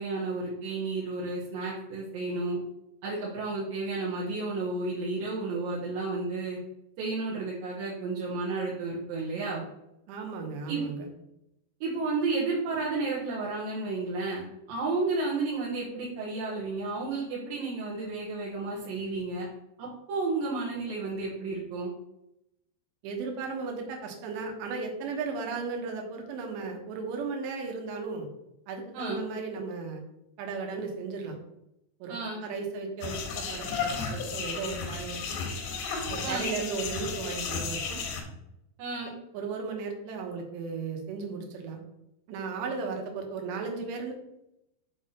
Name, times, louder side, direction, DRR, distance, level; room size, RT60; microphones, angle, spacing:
voice 1, 0.0-2.6 3.0-6.6 7.0-9.6 10.7-10.8 11.8-19.5 19.8-21.9 28.9-29.2 32.1-32.4 36.2-36.5 38.8-39.1, right 3 dB, 65° right, -6 dB, 2.7 m, -32 dB
voice 2, 10.1-11.1 23.0-28.3 28.7-30.0 30.4-31.4 32.0-32.1 32.4-35.4 36.1-38.0 39.3-41.8 42.3-44.1, right 4 dB, 85° right, 2 dB, 3.4 m, -35 dB
sound 1, 33.0-38.2, left 5 dB, 90° left, 3.4 m, -33 dB
7.9 x 3.5 x 5.6 m, 0.85 s
omnidirectional pair, 4.9 m